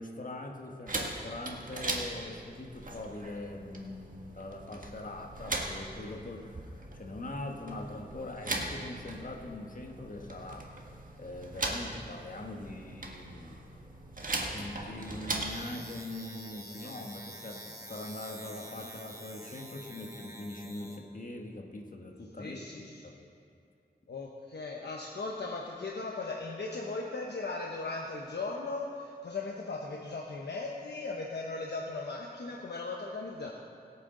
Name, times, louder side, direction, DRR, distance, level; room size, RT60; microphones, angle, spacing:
voice 1, 0.0-10.7 11.2-13.6 14.5-17.6 17.9-23.1, left 2 dB, 50° left, 1 dB, 1.5 m, -42 dB
sound 1, 0.9-15.6, right 2 dB, 50° right, 1.6 m, -39 dB
sound 2, 15.0-21.0, right 1 dB, 20° right, 1.7 m, -48 dB
voice 2, 22.4-22.9 23.2-23.3 24.1-33.5, left 3 dB, 80° left, -1 dB, 1.0 m, -38 dB
21.5 x 8.8 x 3.9 m, 2.4 s
wide cardioid pair, 75°, 17 cm